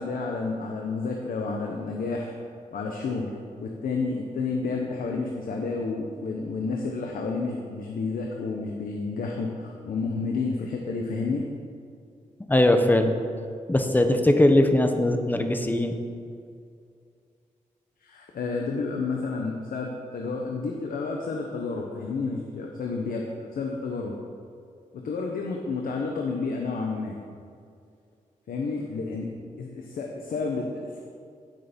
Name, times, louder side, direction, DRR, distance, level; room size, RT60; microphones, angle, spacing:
voice 1, 0.0-2.3 2.7-3.3 3.6-11.4 18.0-24.1 24.9-27.2 28.5-29.3 29.6-31.0, left 4 dB, 85° left, 0 dB, 1.2 m, -30 dB
voice 2, 12.5-13.1 13.7-15.9, left 1 dB, 15° left, 6 dB, 1.0 m, -20 dB
16.0 x 6.7 x 5.3 m, 2.3 s
wide cardioid pair, 120°, 14 cm